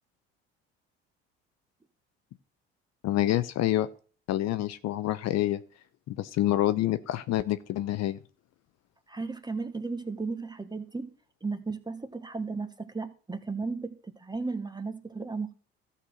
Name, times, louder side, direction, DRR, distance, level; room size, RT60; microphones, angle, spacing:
voice 1, 3.0-3.9 4.3-5.6 6.1-8.2, left 13 dB, 60° left, 0.7 m, -27 dB
voice 2, 9.1-11.1 11.4-14.0 14.2-15.5, right 4 dB, 15° right, 1.3 m, -35 dB
13.0 x 4.4 x 6.4 m
hypercardioid pair, 70°, 30 cm